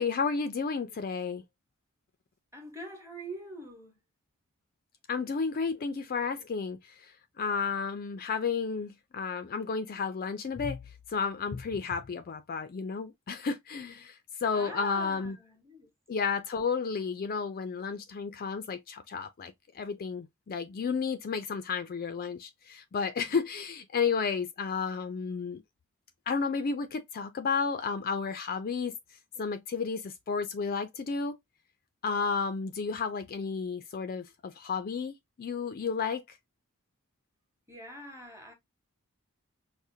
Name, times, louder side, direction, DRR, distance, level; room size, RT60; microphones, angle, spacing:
voice 1, 0.0-1.4 5.1-10.8 11.1-15.4 16.1-25.6 26.3-28.9 29.4-31.4 32.0-36.4, left 5 dB, 40° left, 0.4 m, -32 dB
voice 2, 2.5-4.0 14.5-15.9 37.7-38.5, right 1 dB, 10° right, 1.0 m, -43 dB
4.8 x 2.1 x 2.7 m
head